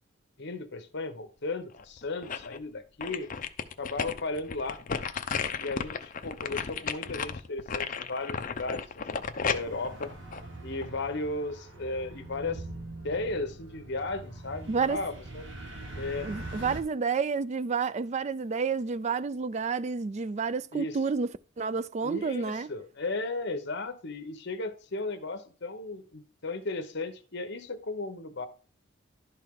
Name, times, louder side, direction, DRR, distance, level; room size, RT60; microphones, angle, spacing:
voice 1, 0.4-3.3 3.8-4.8 5.6-10.1 10.6-12.6 13.0-15.4 15.9-16.3 20.7-21.0 22.0-28.5, left 3 dB, 60° left, 1.0 m, -35 dB
sound 1, 1.7-2.6 3.0-11.1 11.5-11.6, left 6 dB, 40° left, 0.6 m, -34 dB
sound 2, 9.4-16.8, right 2 dB, 65° right, 1.3 m, -43 dB
voice 2, 14.7-15.0 16.2-21.3 21.6-22.7, right 5 dB, 35° right, 0.3 m, -30 dB
11.5 x 4.5 x 3.7 m
head